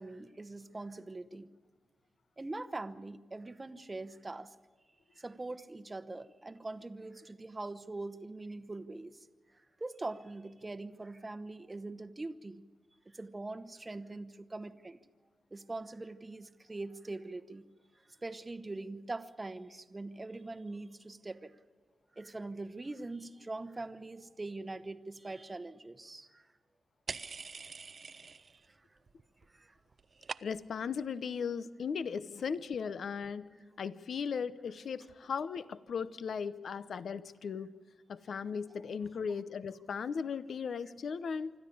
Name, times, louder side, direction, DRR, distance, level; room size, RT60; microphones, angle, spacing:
voice 1, 0.0-1.5 2.4-4.5 5.2-9.2 9.8-12.6 13.1-15.0 15.5-17.6 18.2-21.6 22.2-26.5 28.7-28.8 29.5-29.8, right 2 dB, 25° right, 12 dB, 0.9 m, -42 dB
sound 1, 27.1-28.7 29.0-29.5 29.8-30.8, right 5 dB, 50° right, 0.5 m, -44 dB
voice 2, 30.4-33.5 33.8-37.7 38.1-41.5, left 6 dB, 70° left, 15 dB, 0.8 m, -37 dB
25.5 x 13.0 x 8.5 m, 1.5 s
cardioid pair, 90°, 0 cm